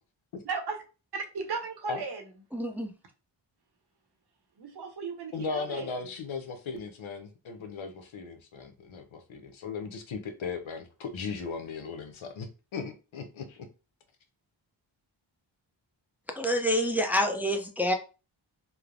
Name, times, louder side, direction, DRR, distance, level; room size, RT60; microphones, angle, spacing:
voice 1, 0.4-0.8 1.1-2.2 4.6-6.0, right 5 dB, 55° right, 4 dB, 0.7 m, -36 dB
voice 2, 2.5-2.9 16.3-17.9, equal, 5° right, 5 dB, 0.4 m, -27 dB
voice 3, 5.3-13.7, left 5 dB, 70° left, 7 dB, 0.7 m, -37 dB
3.0 x 2.0 x 2.5 m, 0.33 s
cardioid pair, 50°, 48 cm